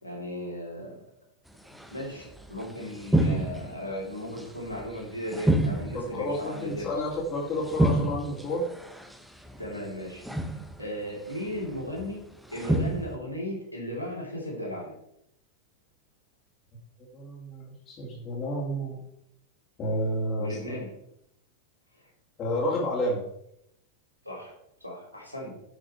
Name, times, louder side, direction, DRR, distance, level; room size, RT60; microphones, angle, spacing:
voice 1, 0.0-1.0 1.9-6.9 9.6-10.2 10.8-12.2 12.5-15.0 20.4-20.9 24.2-25.5, left 1 dB, 90° right, -2 dB, 3.4 m, -36 dB
sound 1, 1.7-1.9 2.2-2.5 2.9-3.9 4.4-5.0 5.3-7.2 7.6-9.1 9.4-9.8 10.2-10.9 11.5-12.1 12.5-13.2, right 1 dB, 5° right, 0.9 m, -28 dB
voice 2, 5.9-8.7 17.1-19.0 19.8-20.8 22.4-23.2, left 1 dB, 30° left, -6 dB, 2.7 m, -30 dB
10.5 x 6.5 x 4.5 m, 0.76 s
figure-of-eight pair, 90°, 0 cm